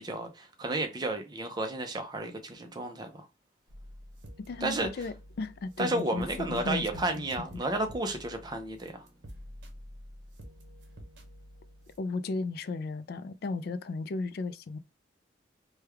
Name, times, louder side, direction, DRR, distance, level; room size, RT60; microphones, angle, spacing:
voice 1, 0.0-3.3 4.6-4.9 5.8-9.0, right 2 dB, 20° right, 0.6 m, -32 dB
sound 1, 3.7-12.0, equal, 70° right, 0.8 m, -48 dB
voice 2, 4.5-7.2 12.0-14.8, left 3 dB, 55° left, 0.3 m, -35 dB
3.2 x 2.2 x 3.3 m
head